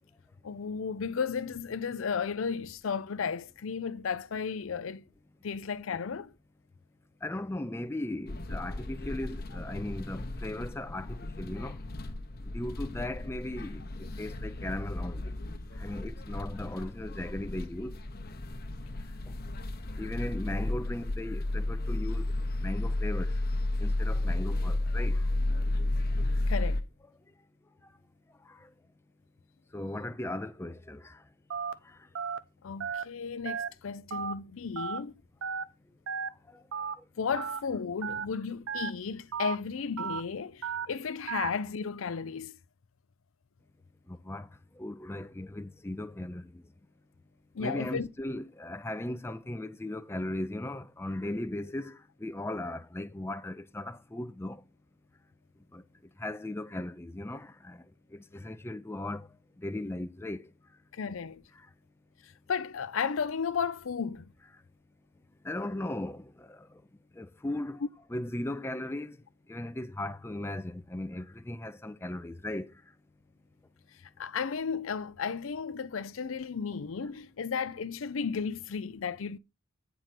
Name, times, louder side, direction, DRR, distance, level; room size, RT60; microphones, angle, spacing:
voice 1, 0.4-5.0 5.4-6.3 26.5-26.8 32.6-35.1 37.2-42.5 47.5-48.1 60.9-61.4 62.2-64.2 74.2-79.4, left 6 dB, 80° left, 0.5 m, -34 dB
voice 2, 7.2-11.8 12.5-13.8 14.2-15.3 15.8-18.0 20.0-22.3 22.6-23.4 23.8-25.2 28.5-28.6 29.7-31.2 31.9-32.0 36.5-36.6 44.1-44.5 44.8-46.5 47.6-54.6 55.7-55.8 56.2-57.8 58.1-59.3 59.6-60.5 65.4-66.7 67.2-69.2 69.5-72.7, left 1 dB, 10° left, 0.5 m, -37 dB
sound 1, 8.3-26.8, left 2 dB, 50° left, 0.9 m, -33 dB
Telephone, 31.5-31.7 32.2-32.4 32.8-33.0 33.5-33.7 34.1-34.3 34.8-35.0 35.4-35.6 36.1-36.3 36.7-36.9 37.4-37.6 38.0-38.3 38.7-38.9 39.3-39.6 40.0-40.2 40.6-40.9 41.3-41.5, right 6 dB, 85° right, 0.7 m, -34 dB
9.1 x 4.7 x 5.7 m
head